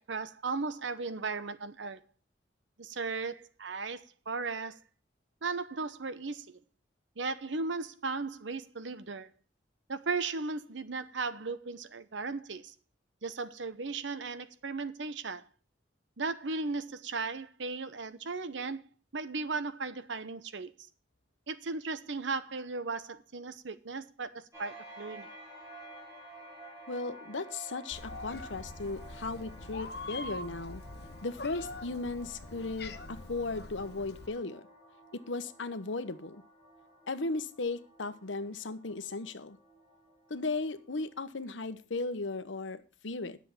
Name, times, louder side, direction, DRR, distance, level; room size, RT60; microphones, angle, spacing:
voice 1, 0.1-2.0 2.8-4.8 5.4-6.6 7.2-9.3 9.9-12.7 13.2-15.4 16.2-18.8 19.1-20.7 21.5-25.3, right 4 dB, 80° right, 0.9 m, -36 dB
sound 1, 24.5-41.8, right 2 dB, 15° right, 6.7 m, -52 dB
voice 2, 26.9-30.8 31.2-34.6 35.1-36.4 37.1-39.6 40.3-43.4, left 3 dB, 85° left, 1.0 m, -36 dB
Meow, 27.9-34.3, left 2 dB, 55° left, 1.0 m, -44 dB
10.5 x 7.3 x 7.1 m
head